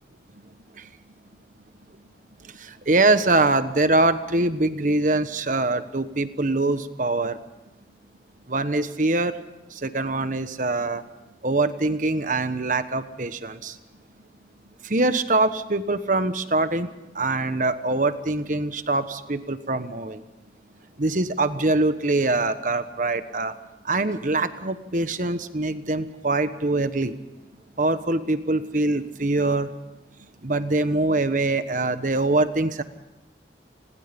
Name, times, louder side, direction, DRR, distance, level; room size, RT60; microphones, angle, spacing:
voice 1, 2.4-7.4 8.5-9.4 9.7-11.0 11.4-13.8 14.8-20.2 21.0-23.6 23.8-27.2 27.8-29.7 30.4-32.8, right 2 dB, 45° right, 11 dB, 1.2 m, -23 dB
29.5 x 21.0 x 5.3 m, 0.97 s
head